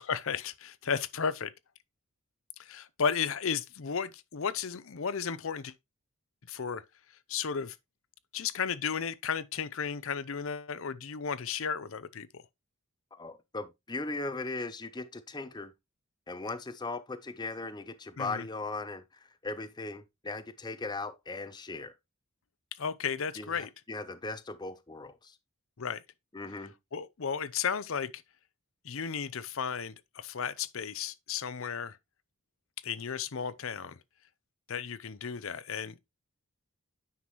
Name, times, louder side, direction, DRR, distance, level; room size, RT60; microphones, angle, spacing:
voice 1, 0.0-1.5 2.6-5.7 6.5-6.8 7.3-7.8 8.3-12.4 18.2-18.4 22.8-23.7 25.8-26.0 26.9-28.2 28.8-32.0 32.8-34.0 34.7-36.0, left 6 dB, 60° left, 0.6 m, -34 dB
voice 2, 13.1-15.7 16.3-21.9 23.4-25.4 26.3-26.7, left 3 dB, 20° left, 0.5 m, -38 dB
9.4 x 5.9 x 3.0 m
head